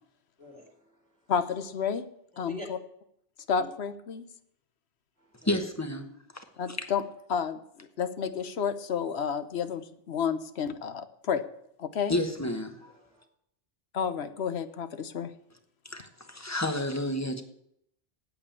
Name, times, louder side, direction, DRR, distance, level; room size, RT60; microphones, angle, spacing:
voice 1, 0.4-1.2 2.3-2.7 3.6-3.7 5.2-5.6 12.8-13.2 16.2-16.6, left 1 dB, 15° right, 3 dB, 2.9 m, -48 dB
voice 2, 1.3-2.0 2.4-2.8 3.5-4.3 6.6-7.0 7.3-7.6 8.0-11.4 11.8-12.2 13.9-15.3, left 7 dB, 85° left, 12 dB, 1.2 m, -30 dB
voice 3, 5.4-6.1 6.7-6.8 12.1-12.8 15.8-17.4, left 1 dB, 15° left, 6 dB, 1.3 m, -30 dB
8.8 x 8.6 x 8.6 m, 0.74 s
omnidirectional pair, 1.1 m